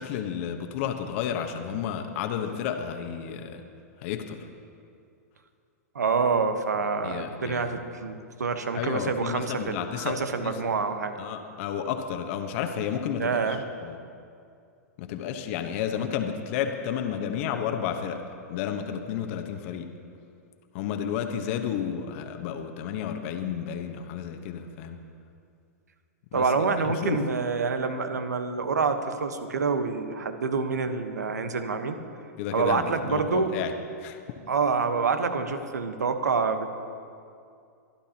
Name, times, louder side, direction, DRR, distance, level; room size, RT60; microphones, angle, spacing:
voice 1, 0.0-3.6 4.0-4.4 7.0-7.7 8.7-10.2 10.4-10.6 11.2-13.6 13.8-14.0 15.0-18.2 18.5-19.9 20.7-25.0 26.3-26.4 27.0-27.2 32.4-33.7 34.0-34.2, left 8 dB, 50° left, 5 dB, 1.1 m, -31 dB
voice 2, 5.9-11.1 13.2-13.6 26.3-32.0 32.5-33.6 34.5-36.7, right 5 dB, 85° right, 8 dB, 1.1 m, -27 dB
24.5 x 12.0 x 2.9 m, 2.4 s
hypercardioid pair, 115°, 9 cm